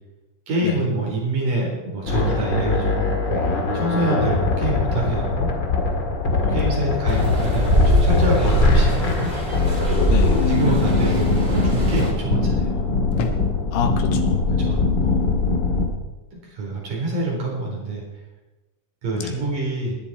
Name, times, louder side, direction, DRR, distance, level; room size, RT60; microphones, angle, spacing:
voice 1, 0.5-3.3 3.7-5.5 6.3-9.3 10.5-12.9 14.6-15.3 16.3-18.0 19.0-20.0, right 2 dB, 70° right, -2 dB, 5.7 m, -26 dB
sound 1, 2.1-15.8, left 3 dB, 40° left, 1.9 m, -22 dB
voice 2, 6.4-7.0 10.1-10.5 13.7-14.5 19.1-19.4, left 6 dB, 80° left, 6 dB, 3.0 m, -28 dB
sound 2, 6.6-7.1 8.5-8.9 9.2-9.6 10.6-11.2 11.9-12.3 13.1-13.8 14.7-15.0, left 3 dB, 65° left, 1.6 m, -32 dB
sound 3, 7.1-12.1, equal, 20° right, 1.2 m, -22 dB
19.5 x 10.5 x 4.3 m, 1.1 s
omnidirectional pair, 4.0 m